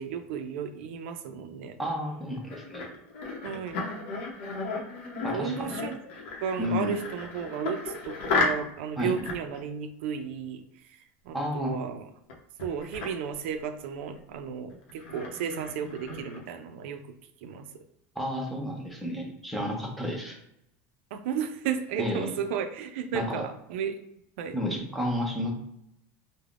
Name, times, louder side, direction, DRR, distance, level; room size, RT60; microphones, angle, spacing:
voice 1, 0.0-1.8 3.4-3.8 5.3-5.9 6.4-10.6 11.3-12.1 12.6-17.0 17.4-17.8 21.1-24.0 24.4-24.6, right 7 dB, 80° right, 8 dB, 0.3 m, -33 dB
voice 2, 1.8-2.9 5.2-5.8 6.6-7.0 9.0-9.1 11.3-11.8 18.2-20.4 22.0-22.4 23.1-23.4 24.5-25.5, left 1 dB, ahead, -2 dB, 0.5 m, -31 dB
sound 1, 2.1-8.8 9.1-9.6 12.3-12.4 12.6-13.1 14.2-14.3 14.7-16.4, left 3 dB, 85° left, 0.7 m, -34 dB
3.3 x 2.1 x 2.4 m, 0.77 s
cardioid pair, 170°, 7 cm